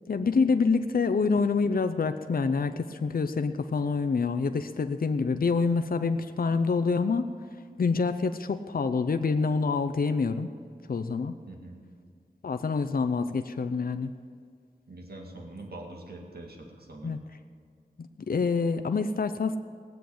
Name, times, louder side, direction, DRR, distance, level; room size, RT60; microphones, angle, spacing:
voice 1, 0.1-7.3 7.8-10.5 10.9-11.4 12.4-14.1 17.0-17.2 18.0-19.6, left 4 dB, 65° left, 8 dB, 0.6 m, -26 dB
voice 2, 11.5-11.8 14.9-17.2, right 2 dB, 75° right, 1 dB, 2.1 m, -44 dB
19.0 x 7.9 x 8.5 m, 2.2 s
wide cardioid pair, 80°, 16 cm